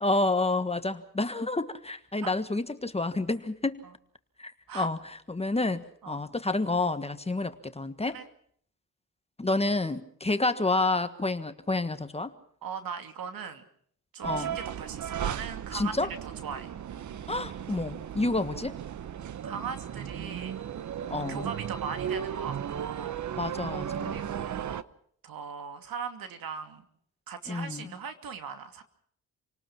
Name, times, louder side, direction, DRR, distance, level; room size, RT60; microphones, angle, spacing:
voice 1, 0.0-3.8 4.4-8.2 9.4-12.3 14.2-14.6 15.7-16.1 17.3-18.7 21.1-21.5 23.4-24.2 27.5-27.9, left 2 dB, 15° left, 10 dB, 1.5 m, -29 dB
voice 2, 12.6-13.6 14.1-15.9 16.2-16.7 19.4-20.6 21.1-23.2 24.0-24.8 25.2-26.8 27.3-28.8, right 6 dB, 65° right, 7 dB, 2.6 m, -39 dB
sound 1, 14.2-24.8, right 9 dB, 50° right, 0.9 m, -36 dB
29.0 x 19.0 x 6.0 m, 0.63 s
cardioid pair, 85°, 37 cm